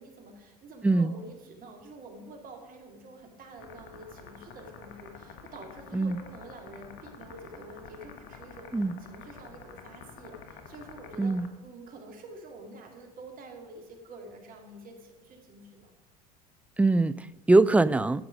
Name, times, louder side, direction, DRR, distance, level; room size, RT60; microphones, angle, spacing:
voice 1, 0.0-11.4 11.6-15.9, right 2 dB, 45° right, 3 dB, 2.4 m, -47 dB
sound 1, 3.6-11.5, left 6 dB, 55° left, 1.3 m, -49 dB
voice 2, 16.8-18.3, right 2 dB, 5° right, 15 dB, 0.3 m, -22 dB
14.0 x 5.9 x 5.0 m, 1.0 s
hypercardioid pair, 70°, 20 cm